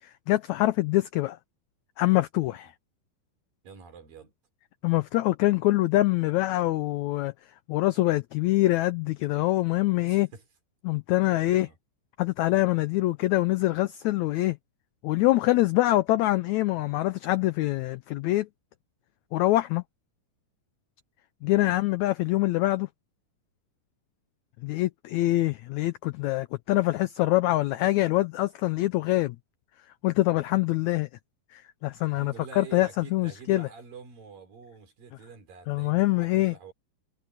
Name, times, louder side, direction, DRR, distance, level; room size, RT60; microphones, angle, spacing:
voice 1, 0.3-1.4 2.0-2.7 4.8-7.3 7.7-10.3 10.8-11.7 12.2-14.6 15.0-18.5 19.3-19.8 21.4-22.9 24.6-29.4 30.0-31.1 31.5-33.7 35.7-36.5, left 17 dB, 90° left, 1.6 m, -24 dB
voice 2, 2.4-2.7 3.6-4.3 10.1-10.4 11.4-11.8 21.5-21.8 32.1-36.7, right 5 dB, 80° right, 6.6 m, -47 dB
omnidirectional pair, 3.9 m